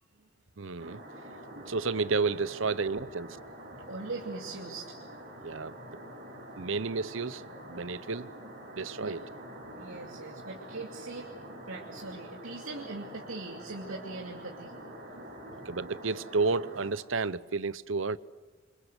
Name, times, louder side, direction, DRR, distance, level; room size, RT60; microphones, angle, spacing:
voice 1, 0.6-1.0 1.5-3.4 5.4-5.7 6.6-7.4 7.7-8.4 8.8-9.2 15.6-18.2, right 4 dB, 70° right, 0.8 m, -31 dB
sound 1, 0.8-16.9, right 1 dB, 45° right, 7.0 m, -46 dB
voice 2, 3.9-5.0 9.0-9.2 9.6-11.3 11.7-14.7, right 3 dB, 85° right, 2.6 m, -41 dB
28.5 x 25.5 x 8.1 m
head